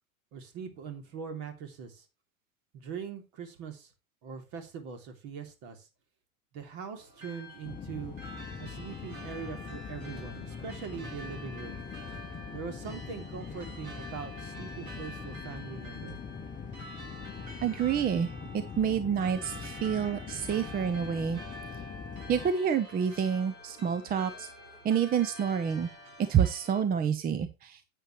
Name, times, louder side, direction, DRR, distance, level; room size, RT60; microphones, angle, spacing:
voice 1, 0.3-2.0 2.7-3.9 4.2-5.9 6.5-8.2 8.6-11.8 12.5-16.2, right 6 dB, 50° right, 6 dB, 3.0 m, -42 dB
sound 1, 7.0-26.8, equal, 70° right, 5.5 m, -48 dB
sound 2, 7.6-22.5, left 5 dB, 20° left, 0.9 m, -42 dB
voice 2, 17.6-21.4 22.3-24.5 24.8-25.9 26.2-27.8, right 8 dB, 20° right, 12 dB, 0.8 m, -28 dB
10.0 x 8.6 x 3.2 m, 0.25 s
hypercardioid pair, 95°, 42 cm